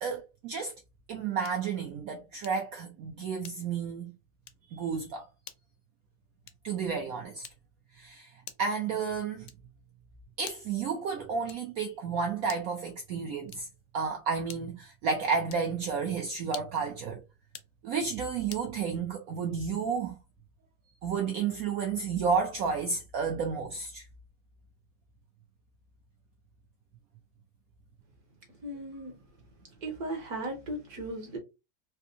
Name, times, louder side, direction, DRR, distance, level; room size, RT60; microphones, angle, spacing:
voice 1, 0.0-0.7 1.1-4.1 4.7-5.3 6.6-7.5 7.9-8.3 8.6-9.5 10.4-13.7 13.9-17.2 17.8-20.2 21.0-24.0, right 5 dB, 80° right, 0.7 m, -31 dB
sound 1, 1.4-1.7 2.4-2.8 3.4-3.9 4.4-4.7 5.4-5.7 6.4-6.8 7.4-7.8 8.4-8.8 9.4-9.8 10.4-10.8 11.5-11.8 12.4-12.8 13.4-13.9 14.5-14.9 15.5-15.8 16.4-16.9 17.4-17.8 18.5-18.7, left 10 dB, 70° left, 1.0 m, -48 dB
voice 2, 28.6-29.1 29.8-31.4, right 1 dB, 60° right, 1.3 m, -36 dB
3.5 x 2.6 x 2.6 m
omnidirectional pair, 2.1 m